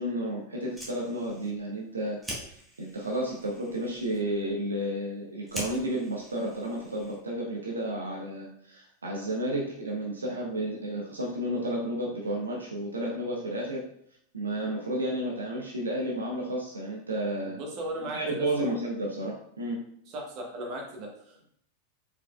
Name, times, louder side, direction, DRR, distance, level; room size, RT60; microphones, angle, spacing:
voice 1, 0.0-2.5 2.8-13.8 14.3-17.6 18.1-19.8, right 1 dB, 75° right, -2 dB, 0.7 m, -32 dB
Fire, 0.5-7.4, equal, 5° right, 1.3 m, -45 dB
voice 2, 17.4-18.2 18.6-18.7 20.1-21.5, right 1 dB, 40° right, 1 dB, 1.2 m, -37 dB
4.7 x 4.2 x 2.3 m, 0.68 s
figure-of-eight pair, 90°, 0 cm